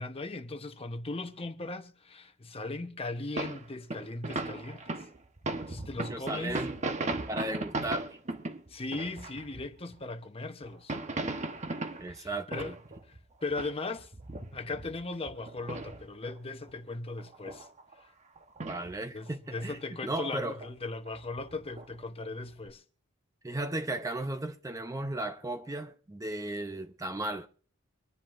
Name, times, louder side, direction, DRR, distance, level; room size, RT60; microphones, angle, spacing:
voice 1, 0.0-5.1 5.7-6.7 8.7-10.9 12.1-12.7 13.1-14.1 14.5-17.7 18.0-18.1 19.1-22.8, left 3 dB, 30° left, 0.9 m, -38 dB
sound 1, 3.4-10.0 10.6-13.2 13.5-16.3 16.6-16.8 17.1-18.0 18.4-18.9 19.2-20.1 20.6-20.7 21.1-22.0 22.5-22.7, right 2 dB, 35° right, 1.1 m, -37 dB
voice 2, 6.1-6.8 7.3-8.2 12.0-12.8 18.7-20.6 23.4-27.5, right 1 dB, 15° right, 0.6 m, -35 dB
25.0 x 10.5 x 2.5 m
head